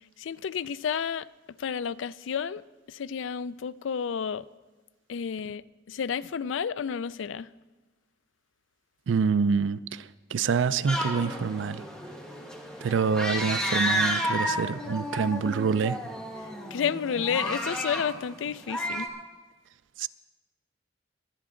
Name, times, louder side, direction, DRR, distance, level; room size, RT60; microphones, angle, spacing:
voice 1, 0.2-1.3 1.6-2.6 2.9-4.5 5.1-7.5 16.7-19.1, left 7 dB, 80° left, 0.4 m, -31 dB
voice 2, 9.1-10.0 10.3-11.8 12.8-16.0 20.0-20.1, right 5 dB, 75° right, 0.4 m, -26 dB
sound 1, 10.9-19.1, equal, 5° left, 1.4 m, -31 dB
22.0 x 9.4 x 3.8 m
head